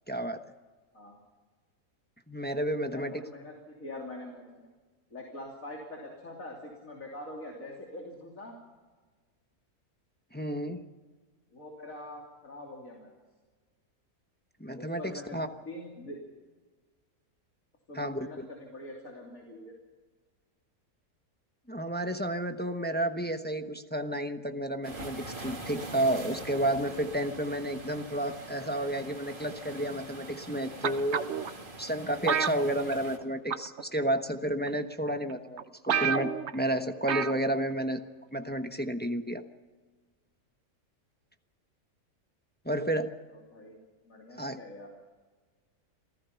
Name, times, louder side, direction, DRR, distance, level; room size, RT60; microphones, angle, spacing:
voice 1, 0.1-0.4 2.3-3.2 10.3-10.8 14.6-15.5 17.9-18.5 21.7-31.2 31.8-38.0 38.3-39.4 42.6-43.1 44.4-44.6, right 1 dB, 10° left, 7 dB, 0.9 m, -31 dB
voice 2, 2.8-4.7 5.1-8.6 11.5-13.1 14.7-16.2 17.9-19.7 43.3-43.8 44.0-44.9, left 1 dB, 60° left, 0 dB, 3.5 m, -44 dB
sound 1, 24.8-33.2, right 2 dB, 35° right, 2.4 m, -43 dB
sound 2, 30.8-31.5 32.3-33.2 33.5-33.8 34.7-34.8 35.3-35.4 35.6-35.7 35.9-36.5 37.1-37.4 37.7-37.8, right 7 dB, 55° right, 1.0 m, -29 dB
27.5 x 16.0 x 5.8 m, 1.4 s
omnidirectional pair, 1.6 m